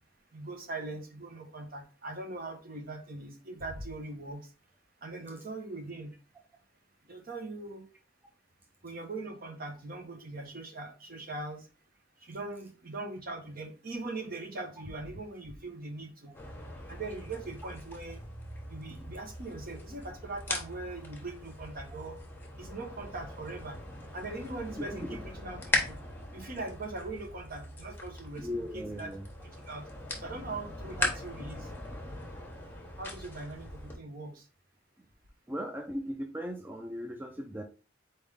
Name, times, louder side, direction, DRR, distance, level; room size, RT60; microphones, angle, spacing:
voice 1, 0.3-4.5 5.0-6.1 7.1-7.9 8.8-11.7 12.2-16.3 16.9-18.2 18.7-22.2 22.6-23.8 24.1-26.0 26.3-29.1 29.4-29.9 30.2-31.7 33.0-34.4, right 2 dB, 50° right, 5 dB, 0.9 m, -41 dB
sound 1, 16.3-34.0, left 2 dB, 10° left, 1.1 m, -39 dB
voice 2, 24.8-25.2 28.4-29.3 35.5-37.6, equal, 10° right, 3 dB, 0.3 m, -37 dB
4.3 x 3.5 x 3.3 m, 0.35 s
head